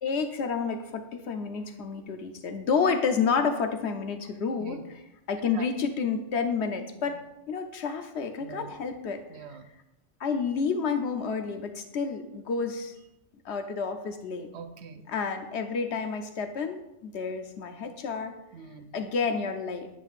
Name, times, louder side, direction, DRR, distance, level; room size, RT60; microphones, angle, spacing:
voice 1, 0.0-4.8 5.3-7.2 7.5-9.2 10.2-13.0 13.4-14.5 15.1-18.3 18.9-19.9, left 5 dB, 65° left, 6 dB, 0.9 m, -30 dB
voice 2, 4.6-4.9 5.5-5.7 7.1-7.2 8.4-8.7 9.3-9.7 14.5-15.0 18.5-18.9, right 6 dB, 65° right, 8 dB, 0.9 m, -44 dB
9.5 x 7.5 x 2.4 m, 0.91 s
omnidirectional pair, 1.3 m